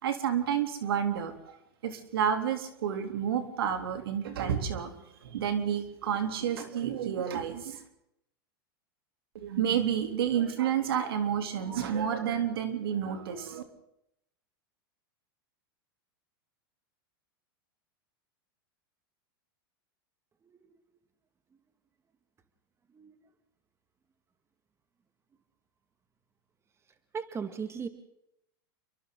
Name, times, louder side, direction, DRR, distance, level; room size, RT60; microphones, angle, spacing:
voice 1, 0.0-1.6 1.8-4.9 5.2-7.8 9.3-13.6, right 8 dB, 80° right, 6 dB, 3.2 m, -30 dB
voice 2, 27.1-27.9, right 6 dB, 20° right, 8 dB, 2.0 m, -37 dB
29.5 x 23.5 x 3.9 m, 0.78 s
hypercardioid pair, 115°, 12 cm